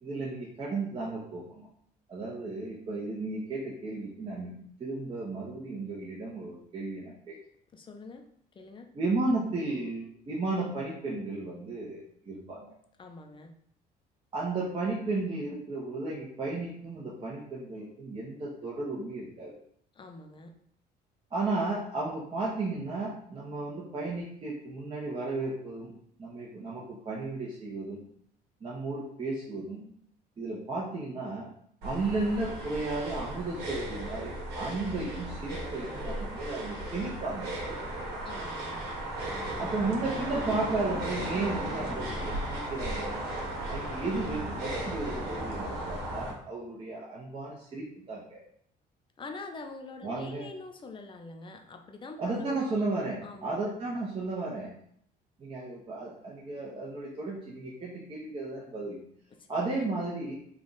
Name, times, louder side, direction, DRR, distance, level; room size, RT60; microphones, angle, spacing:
voice 1, 0.0-1.7 2.1-7.4 8.9-12.7 14.3-19.5 21.3-28.0 28.6-29.9 30.4-31.5 31.8-37.8 39.6-43.3 43.7-48.4 50.0-50.5 52.2-54.7 55.4-59.0 59.5-60.3, right 3 dB, 30° right, -5 dB, 0.9 m, -34 dB
voice 2, 7.7-8.3 8.5-8.9 13.0-13.5 20.0-20.6 38.2-38.8 39.3-39.7 49.2-52.8 53.2-53.5 59.4-59.9, left 3 dB, 30° left, 4 dB, 0.5 m, -45 dB
sound 1, 31.8-46.3, right 1 dB, 80° right, 1.2 m, -35 dB
3.4 x 2.4 x 3.9 m, 0.67 s
cardioid pair, 110°, 17 cm